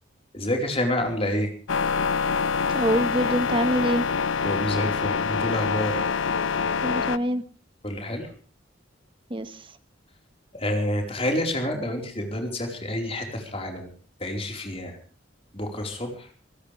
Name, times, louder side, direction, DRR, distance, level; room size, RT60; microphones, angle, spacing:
voice 1, 0.3-1.5 4.4-6.0 7.8-8.3 10.5-13.9 14.2-15.0 15.5-16.3, left 1 dB, 30° left, 2 dB, 4.6 m, -28 dB
sound 1, 1.7-7.2, left 5 dB, 90° left, 0.7 m, -25 dB
voice 2, 2.7-4.0 6.8-7.4 9.3-9.5, equal, 25° right, 10 dB, 1.5 m, -24 dB
25.0 x 16.5 x 3.5 m, 0.40 s
head